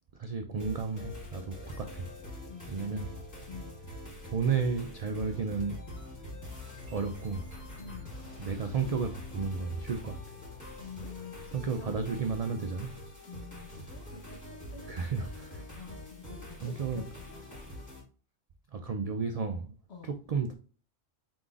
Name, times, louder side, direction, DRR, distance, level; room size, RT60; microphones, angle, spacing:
voice 1, 0.1-2.1 2.7-3.1 4.3-5.8 6.9-7.4 8.4-10.4 11.5-13.0 14.8-15.7 16.6-17.1 18.7-19.7 20.0-20.5, right 5 dB, 80° right, 0.3 m, -33 dB
sound 1, 0.6-18.0, left 1 dB, 15° left, 1.6 m, -45 dB
sound 2, 0.9-17.4, left 3 dB, 40° left, 0.5 m, -50 dB
voice 2, 2.5-3.2 3.5-3.7 7.8-8.1 10.8-12.0 13.3-14.2 14.7-14.8 15.2-17.8 19.9-20.1, left 5 dB, 60° left, 1.2 m, -48 dB
4.8 x 3.8 x 2.4 m
omnidirectional pair, 1.3 m